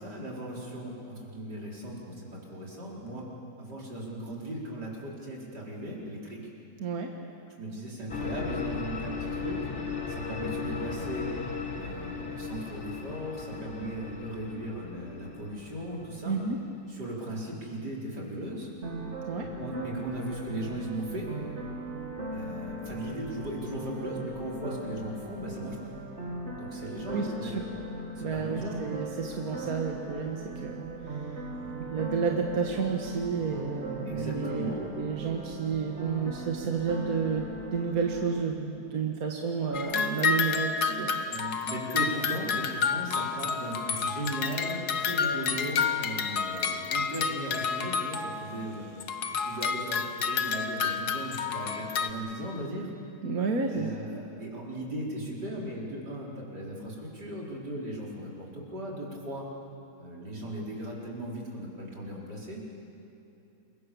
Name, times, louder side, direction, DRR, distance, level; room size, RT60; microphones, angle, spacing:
voice 1, 0.0-3.3 3.6-6.5 7.6-9.7 10.1-11.4 11.7-16.4 16.9-18.7 19.4-21.3 22.3-25.8 26.6-27.6 28.2-28.8 31.5-31.7 34.1-34.9 41.3-48.9 49.3-52.9 53.7-59.5 60.0-62.7, right 1 dB, 85° right, -3 dB, 5.0 m, -37 dB
voice 2, 6.8-7.1 16.3-16.6 19.3-19.5 27.1-27.6 28.2-31.3 31.9-41.5 53.2-54.0, right 5 dB, 60° right, 1 dB, 1.9 m, -31 dB
sound 1, 8.1-17.0, left 5 dB, 35° left, 1.7 m, -37 dB
sound 2, 18.8-38.4, right 1 dB, 45° right, 2.3 m, -39 dB
sound 3, 39.7-48.6 49.0-52.1, left 5 dB, 70° left, 1.6 m, -30 dB
28.0 x 23.0 x 7.0 m, 2.8 s
omnidirectional pair, 1.7 m